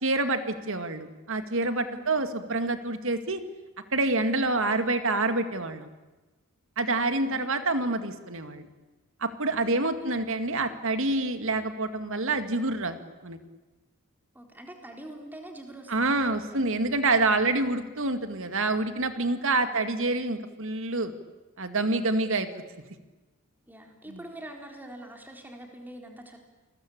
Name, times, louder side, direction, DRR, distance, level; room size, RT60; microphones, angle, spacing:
voice 1, 0.0-3.4 3.9-5.9 6.8-8.7 9.2-13.0 13.2-13.4 15.9-21.1 21.6-22.5, right 2 dB, 60° right, 9 dB, 2.2 m, -27 dB
voice 2, 6.9-7.5 9.8-10.1 14.3-16.8 19.5-20.0 23.7-26.4, right 1 dB, 10° right, 2 dB, 4.1 m, -45 dB
29.0 x 21.0 x 8.7 m, 1.2 s
head